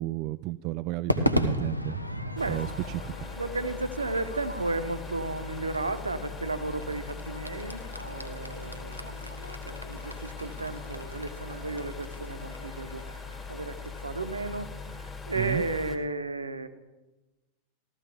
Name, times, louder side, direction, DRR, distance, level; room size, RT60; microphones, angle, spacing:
voice 1, 0.0-2.0 2.5-3.1 15.3-15.6, right 18 dB, 40° right, 14 dB, 0.3 m, -32 dB
Crowd / Fireworks, 1.1-15.5, left 1 dB, 90° left, 0.9 m, -36 dB
sound 1, 2.4-16.0, left 4 dB, 15° left, 1.8 m, -41 dB
voice 2, 2.4-2.7 3.4-13.0 13.5-16.7, right 2 dB, 80° right, 11 dB, 0.9 m, -34 dB
15.0 x 14.0 x 3.5 m, 1.1 s
figure-of-eight pair, 90°, 0 cm